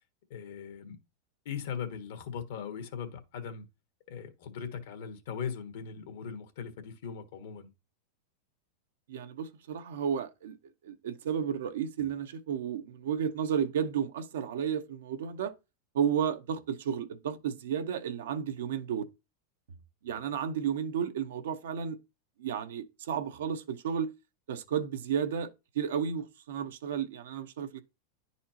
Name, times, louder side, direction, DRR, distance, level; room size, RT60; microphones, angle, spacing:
voice 1, 0.3-1.0 1.4-3.6 4.1-7.7, left 7 dB, 70° left, 1.4 m, -39 dB
voice 2, 9.1-10.6 10.8-15.5 15.9-19.0 20.0-22.0 22.4-24.1 24.5-27.8, right 8 dB, 80° right, 0.7 m, -32 dB
10.0 x 4.2 x 2.8 m
hypercardioid pair, 125°, 0 cm